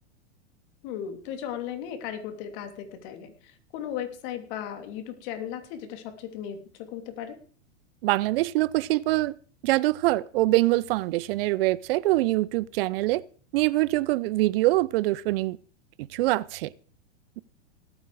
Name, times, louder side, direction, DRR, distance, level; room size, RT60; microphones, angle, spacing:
voice 1, 0.8-7.4, left 9 dB, 50° left, 3.0 m, -36 dB
voice 2, 8.0-9.3 9.6-13.2 13.5-15.6 16.1-16.7, right 18 dB, 55° right, 0.6 m, -24 dB
18.0 x 8.9 x 4.8 m
hypercardioid pair, 115°, 34 cm